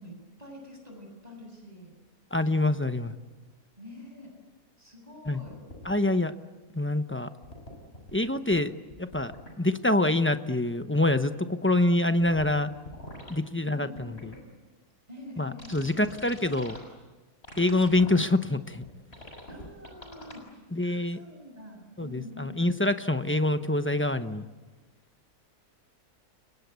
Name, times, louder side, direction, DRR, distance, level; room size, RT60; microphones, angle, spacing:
voice 1, 0.0-1.9 3.8-4.3 4.8-5.6 12.4-12.6 13.6-14.5 15.1-16.0 19.5-22.5, left 1 dB, 25° right, 2 dB, 7.6 m, -46 dB
voice 2, 2.3-3.1 5.3-5.4 5.8-6.3 6.8-7.3 8.1-8.7 9.0-9.3 9.6-12.7 13.3-14.3 15.4-16.8 17.6-18.8 20.7-21.2 22.0-24.5, left 2 dB, 10° left, 9 dB, 0.7 m, -26 dB
sound 1, 5.5-5.9 7.4-8.1 8.5-8.6 8.9-9.5 12.2-12.5 12.8-13.3 14.0-14.4 15.6-16.8 17.4-18.2 18.8-18.9 19.1-20.3, left 1 dB, 45° left, 6.7 m, -44 dB
30.0 x 23.0 x 8.3 m, 1.3 s
omnidirectional pair, 1.5 m